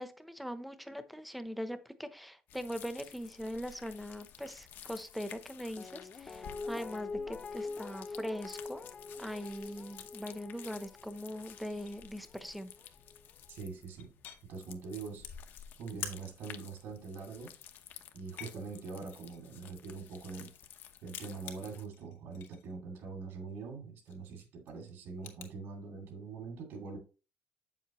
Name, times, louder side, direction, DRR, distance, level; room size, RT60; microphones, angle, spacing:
voice 1, 0.0-8.8 9.2-12.7, equal, ahead, 10 dB, 0.8 m, -41 dB
sound 1, 2.5-21.8, left 8 dB, 60° left, 1.0 m, -53 dB
Guitar, 5.8-12.8 13.1-13.2, left 3 dB, 25° left, 0.5 m, -45 dB
sound 2, 8.5-8.7 9.2-10.2 10.5-10.9 11.2-11.3 11.6-12.1 13.2-13.3 13.6-14.4 15.1-16.2 16.5-16.8 17.1-17.7 18.2-20.8 21.0-22.7 23.0-23.1 23.5-23.7 24.1-25.5, left 9 dB, 80° left, 2.3 m, -48 dB
voice 2, 13.5-14.1 14.4-15.3 15.8-17.5 18.1-20.5 21.0-27.0, right 4 dB, 80° right, 0 dB, 2.6 m, -43 dB
8.9 x 7.5 x 3.1 m, 0.33 s
cardioid pair, 160°, 4 cm